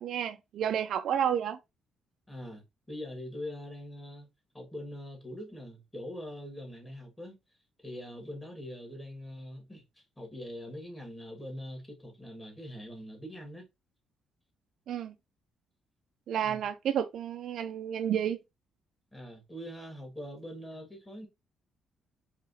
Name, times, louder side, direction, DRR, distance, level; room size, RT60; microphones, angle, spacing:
voice 1, 0.0-1.6 14.9-15.1 16.3-18.4, right 9 dB, 70° right, 0.4 m, -31 dB
voice 2, 2.3-4.3 4.5-7.4 7.8-9.8 10.2-13.7 16.4-16.6 19.1-21.3, left 1 dB, 15° left, 1.8 m, -43 dB
4.8 x 2.9 x 2.7 m
cardioid pair, 90°, 0 cm